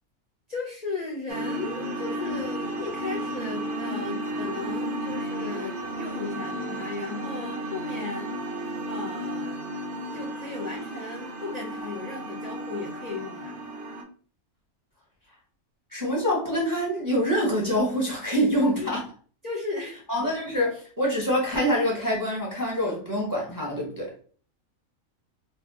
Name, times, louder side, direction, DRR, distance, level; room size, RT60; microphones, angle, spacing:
voice 1, 0.5-8.3 8.9-9.6 10.1-13.6 18.6-19.0 19.4-20.0, left 3 dB, 50° left, 0.4 m, -36 dB
sound 1, 1.3-14.0, right 1 dB, 60° right, 0.7 m, -33 dB
voice 2, 15.9-19.0 20.1-24.1, equal, 20° right, 0.7 m, -25 dB
2.7 x 2.1 x 3.6 m
omnidirectional pair, 1.5 m